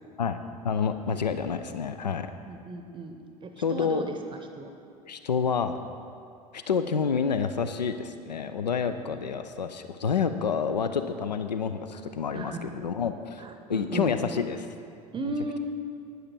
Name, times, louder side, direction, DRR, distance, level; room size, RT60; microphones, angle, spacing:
voice 1, 0.6-2.3 3.6-4.1 5.1-5.8 6.5-14.7, left 6 dB, 80° left, 10 dB, 0.4 m, -28 dB
voice 2, 2.5-4.7 8.9-9.0 12.3-12.7 13.4-14.1 15.1-15.6, right 3 dB, 25° right, 7 dB, 0.7 m, -36 dB
11.5 x 9.2 x 4.4 m, 2.4 s
figure-of-eight pair, 70°, 21 cm